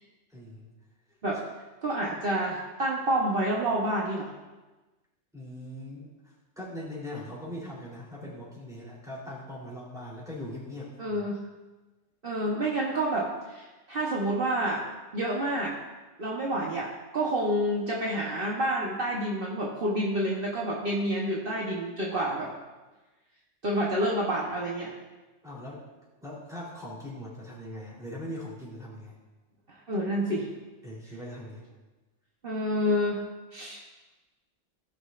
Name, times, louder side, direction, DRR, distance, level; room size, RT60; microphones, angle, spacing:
voice 1, 0.3-0.7 5.3-6.1 6.5-11.2 25.4-25.8 26.2-29.1 30.8-31.6, left 1 dB, 5° right, -6 dB, 3.4 m, -40 dB
voice 2, 1.8-4.3 11.0-11.4 12.2-14.8 15.1-15.7 16.2-22.5 23.6-24.9 29.7-30.5 32.4-33.2 33.5-33.8, right 1 dB, 50° right, -4 dB, 1.3 m, -28 dB
18.0 x 6.2 x 2.5 m, 1.2 s
omnidirectional pair, 1.2 m